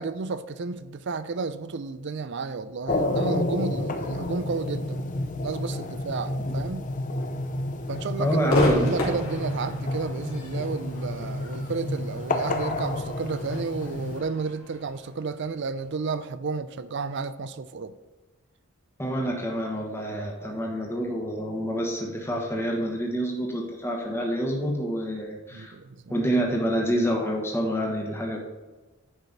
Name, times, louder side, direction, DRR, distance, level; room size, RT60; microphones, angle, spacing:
voice 1, 0.0-5.1 5.4-6.9 7.9-18.0 25.5-26.2, right 4 dB, 55° right, 0.5 m, -32 dB
sound 1, 2.9-14.2, left 2 dB, 35° left, 0.6 m, -30 dB
voice 2, 8.2-8.9 19.0-25.7 26.1-28.4, equal, 10° left, 1.3 m, -27 dB
Crowd / Fireworks, 8.5-15.8, left 1 dB, 80° left, 2.9 m, -32 dB
9.9 x 5.1 x 4.0 m
head